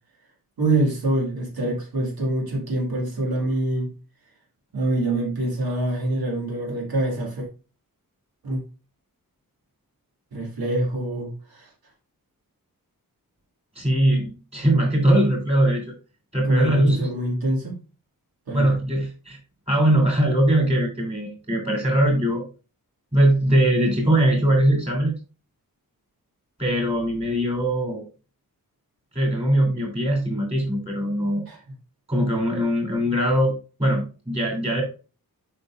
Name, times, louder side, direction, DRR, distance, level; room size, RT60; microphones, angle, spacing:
voice 1, 0.6-3.9 4.7-7.5 8.4-8.6 10.3-11.7 16.4-17.8 18.5-18.7 31.5-31.6, right 1 dB, 85° right, 2.1 m, -25 dB
voice 2, 13.7-15.8 16.3-17.1 18.5-19.4 19.7-22.4 23.1-25.1 26.6-28.1 29.1-31.4 32.1-34.8, right 1 dB, 15° right, 2.9 m, -21 dB
7.9 x 5.4 x 2.5 m
wide cardioid pair, 160°, 36 cm